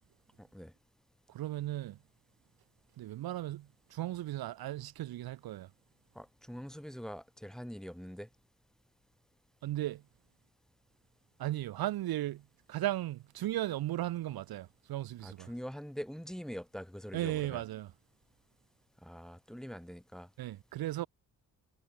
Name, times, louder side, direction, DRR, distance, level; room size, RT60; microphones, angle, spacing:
voice 1, 0.4-0.7 6.2-8.3 15.2-17.6 19.0-20.3, equal, ahead, 1.9 m, -44 dB
voice 2, 1.3-2.0 3.0-5.7 9.6-10.0 11.4-12.4 12.7-15.5 17.1-17.9 20.4-21.1, right 14 dB, 70° right, 0.7 m, -36 dB
wide cardioid pair, 155°, 37 cm